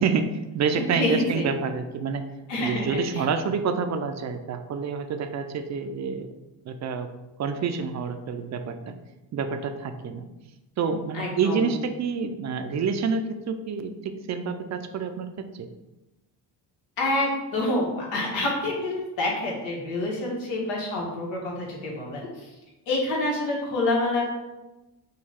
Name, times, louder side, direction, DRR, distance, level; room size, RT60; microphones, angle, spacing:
voice 1, 0.0-2.2 2.6-6.3 6.7-7.1 7.4-8.9 9.3-10.3 10.8-15.3 15.5-15.7, right 5 dB, 40° right, 8 dB, 0.5 m, -28 dB
voice 2, 0.7-1.4 2.5-3.2 11.1-11.6 17.0-22.3 22.9-24.3, left 2 dB, 90° left, -2 dB, 1.4 m, -27 dB
5.4 x 2.3 x 3.5 m, 1.0 s
cardioid pair, 90°, 45 cm